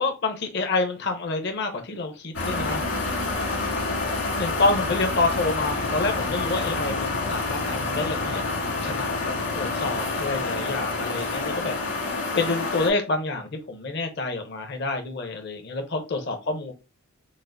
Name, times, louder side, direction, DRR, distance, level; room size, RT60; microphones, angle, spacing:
voice 1, 0.0-2.8 4.4-8.4 8.8-11.7 12.3-16.7, left 3 dB, 50° left, 0.7 m, -28 dB
sound 1, 2.3-12.9, left 3 dB, 65° left, 2.2 m, -28 dB
7.3 x 2.4 x 2.6 m
head